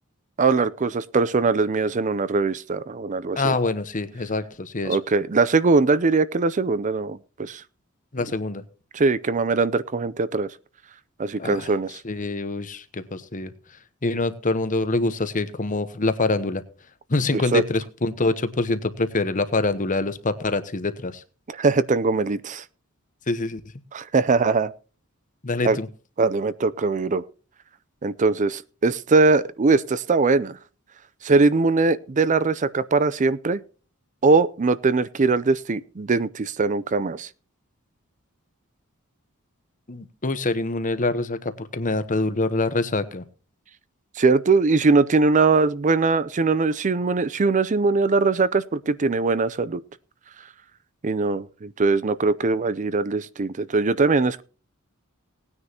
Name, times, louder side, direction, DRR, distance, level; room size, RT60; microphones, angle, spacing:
voice 1, 0.4-3.5 4.8-7.6 8.9-10.5 11.2-12.0 17.3-17.6 21.5-22.6 23.9-24.7 25.6-25.8 26.2-27.2 28.0-30.6 31.2-33.6 34.2-37.3 44.2-49.8 51.0-54.4, right 3 dB, 35° right, 16 dB, 0.5 m, -21 dB
voice 2, 3.4-5.0 8.1-8.6 11.4-11.7 12.0-13.5 14.0-16.6 17.1-21.2 23.3-23.6 25.4-25.9 39.9-43.2, left 2 dB, 40° left, 12 dB, 1.0 m, -25 dB
18.5 x 9.7 x 2.9 m, 0.35 s
head